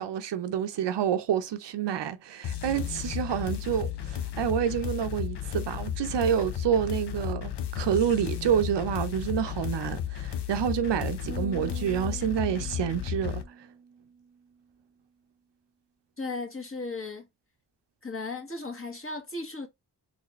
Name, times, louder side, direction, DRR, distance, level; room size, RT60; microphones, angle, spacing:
voice 1, 0.0-13.4, right 9 dB, 85° right, 0.7 m, -28 dB
sound 1, 2.4-13.4, left 10 dB, 75° left, 0.9 m, -34 dB
sound 2, 11.3-14.7, right 5 dB, 35° right, 0.7 m, -44 dB
voice 2, 16.2-17.3 18.0-19.7, left 3 dB, 30° left, 1.7 m, -36 dB
4.1 x 3.4 x 3.0 m
cardioid pair, 55°, 41 cm